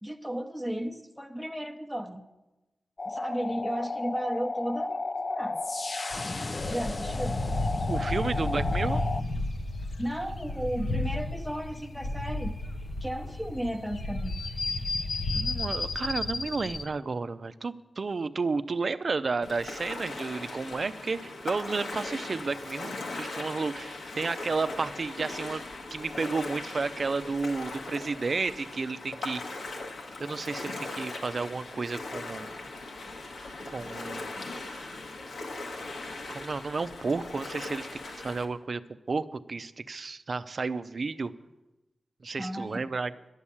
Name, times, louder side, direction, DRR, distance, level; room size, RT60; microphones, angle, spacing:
voice 1, 0.0-2.2 3.1-5.6 6.7-7.4 10.0-12.5 13.0-14.4 42.4-42.9, equal, ahead, 5 dB, 0.9 m, -34 dB
sound 1, 3.0-9.2, left 3 dB, 40° left, 0.5 m, -34 dB
sound 2, 6.1-16.9, left 2 dB, 60° left, 0.9 m, -32 dB
voice 2, 7.9-9.0 15.4-25.6 25.9-29.7 30.2-32.5 33.7-35.0 36.3-38.8 39.1-41.3 42.2-43.1, right 4 dB, 50° right, 13 dB, 0.6 m, -32 dB
Ocean, 19.4-38.4, left 2 dB, 90° left, 1.7 m, -39 dB
11.5 x 7.2 x 9.8 m, 1.0 s
wide cardioid pair, 90°, 0 cm